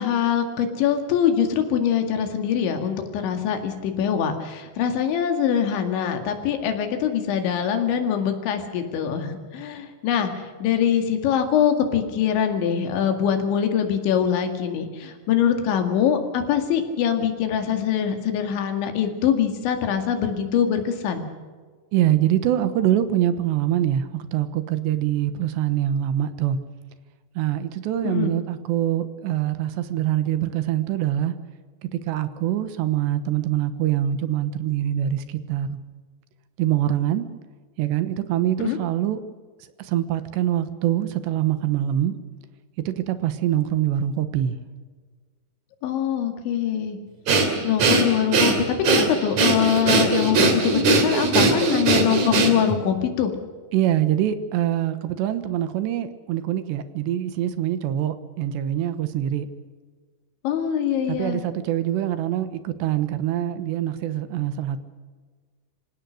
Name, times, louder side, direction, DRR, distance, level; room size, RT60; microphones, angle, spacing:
voice 1, 0.0-21.3 28.0-28.3 38.6-38.8 45.8-47.0 47.6-53.3 60.4-61.4, left 8 dB, 85° left, 6 dB, 4.5 m, -23 dB
voice 2, 21.9-26.6 27.4-31.3 32.1-35.8 36.6-37.3 37.8-39.2 39.9-42.1 42.9-44.5 53.7-59.5 61.1-64.8, right 11 dB, 80° right, 11 dB, 3.3 m, -24 dB
Breathing, 47.3-52.8, right 3 dB, 45° right, 3.4 m, -20 dB
26.0 x 17.0 x 6.6 m, 1.5 s
omnidirectional pair, 5.2 m